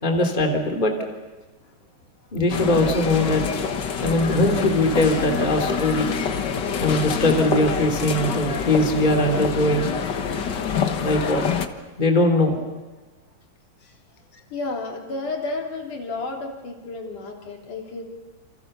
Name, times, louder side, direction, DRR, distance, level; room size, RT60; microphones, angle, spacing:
voice 1, 0.0-0.9 2.3-3.6 4.0-6.1 6.8-9.9 11.0-11.4 12.0-12.6, left 1 dB, 15° left, 4 dB, 3.0 m, -21 dB
sound 1, 2.5-11.7, left 6 dB, 50° left, 1.3 m, -26 dB
voice 2, 14.5-18.0, left 3 dB, 70° left, 2 dB, 4.7 m, -32 dB
29.0 x 28.5 x 6.9 m, 1.2 s
omnidirectional pair, 3.8 m